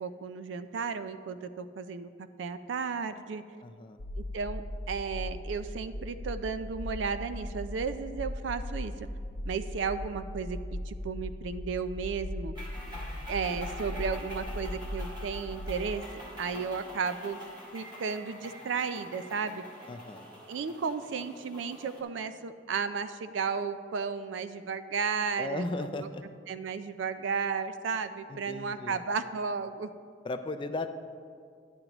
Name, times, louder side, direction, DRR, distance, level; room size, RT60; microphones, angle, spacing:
voice 1, 0.0-2.1 2.4-3.4 4.2-9.1 9.4-12.5 13.3-16.0 16.4-17.4 17.7-19.6 20.5-26.1 26.5-29.9, right 5 dB, 80° right, 11 dB, 0.4 m, -34 dB
voice 2, 3.6-4.0 19.9-20.3 25.4-26.2 28.3-29.0 30.2-31.0, left 2 dB, 25° left, 9 dB, 0.3 m, -36 dB
sound 1, 4.0-15.9, left 1 dB, 70° left, 0.7 m, -38 dB
sound 2, 12.5-22.0, equal, 25° right, 1.7 m, -46 dB
10.5 x 10.0 x 3.0 m, 2.2 s
head